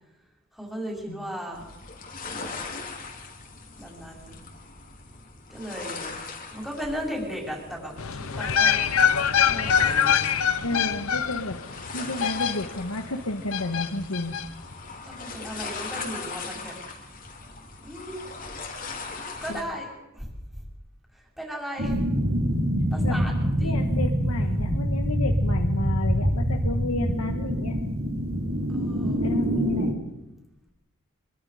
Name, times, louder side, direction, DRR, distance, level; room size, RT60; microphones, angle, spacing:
voice 1, 0.5-1.7 2.3-2.6 3.8-4.4 5.5-6.1 6.5-8.8 9.4-10.8 15.1-16.7 17.8-18.3 19.4-20.3 21.1-22.0 22.9-23.8 28.7-29.2, equal, ahead, -2 dB, 5.7 m, -36 dB
sound 1, 1.5-19.6, left 4 dB, 40° left, 3.0 m, -40 dB
sound 2, 8.0-13.0 13.5-14.5 14.7-14.8, left 8 dB, 75° left, 0.9 m, -24 dB
voice 2, 10.6-11.6 11.9-14.3 19.5-19.7 23.0-23.2 23.6-27.8 29.2-30.0, left 2 dB, 90° left, 4 dB, 1.6 m, -31 dB
sound 3, 21.8-29.9, equal, 75° right, 3.5 m, -25 dB
25.5 x 23.0 x 5.1 m, 0.95 s
head